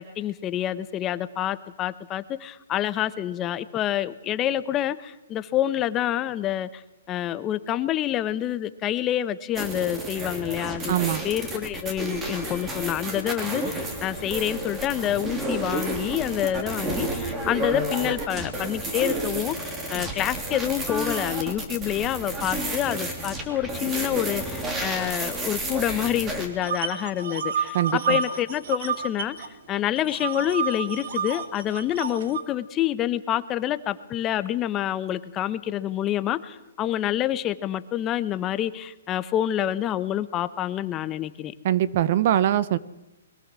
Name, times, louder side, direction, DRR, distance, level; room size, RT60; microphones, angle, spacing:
voice 1, 0.0-11.0 11.2-29.4 29.7-41.5, left 12 dB, 20° left, 14 dB, 0.9 m, -27 dB
sound 1, 9.6-26.5, right 1 dB, 15° right, 3.2 m, -31 dB
voice 2, 10.9-11.3 27.7-28.2 41.6-42.8, right 11 dB, 45° right, 18 dB, 0.8 m, -22 dB
sound 2, 26.6-29.5 29.7-32.4, right 6 dB, 65° right, 2.4 m, -30 dB
22.5 x 18.5 x 7.5 m, 1.0 s
hypercardioid pair, 160°, 0 cm